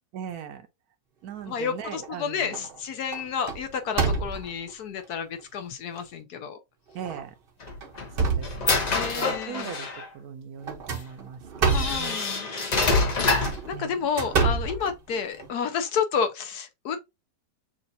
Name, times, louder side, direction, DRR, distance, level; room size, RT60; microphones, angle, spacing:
voice 1, 0.1-0.7 1.2-2.6 6.9-7.3 8.2-12.2 13.7-14.1, right 8 dB, 65° right, 1.1 m, -39 dB
voice 2, 1.5-6.6 8.9-9.7 11.7-12.5 13.7-17.0, left 6 dB, 65° left, 1.3 m, -30 dB
sound 1, 1.5-2.1 2.5-2.8 3.1-4.7 5.4-5.5 6.0-6.1 7.0-7.2 7.7-9.1 10.6-12.1 13.2-15.5, right 4 dB, 45° right, 0.8 m, -28 dB
sound 2, 7.6-10.1 10.9-11.0 11.6-13.7, left 3 dB, 45° left, 0.5 m, -26 dB
6.3 x 2.5 x 2.6 m
omnidirectional pair, 1.9 m